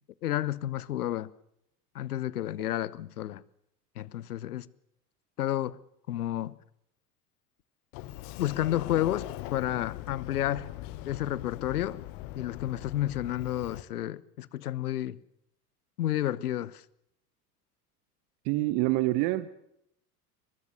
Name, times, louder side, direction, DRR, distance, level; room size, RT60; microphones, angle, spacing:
voice 1, 0.2-1.3 1.9-3.4 4.0-4.7 5.4-5.8 6.1-6.6 8.4-10.7 11.1-12.0 12.3-15.2 16.0-16.8, left 13 dB, 70° left, 1.0 m, -31 dB
Sliding door, 7.9-13.8, left 16 dB, 45° left, 1.4 m, -41 dB
voice 2, 18.4-19.5, right 19 dB, 45° right, 1.1 m, -26 dB
23.5 x 22.0 x 6.7 m
figure-of-eight pair, 80°, 47 cm